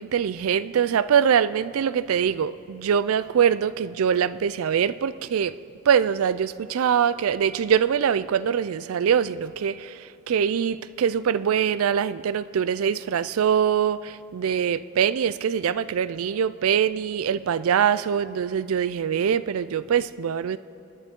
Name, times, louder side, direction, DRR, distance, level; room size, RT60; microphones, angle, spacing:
voice 1, 0.0-5.5 5.9-20.6, right 8 dB, 85° right, 0.4 m, -23 dB
28.0 x 10.5 x 3.7 m
head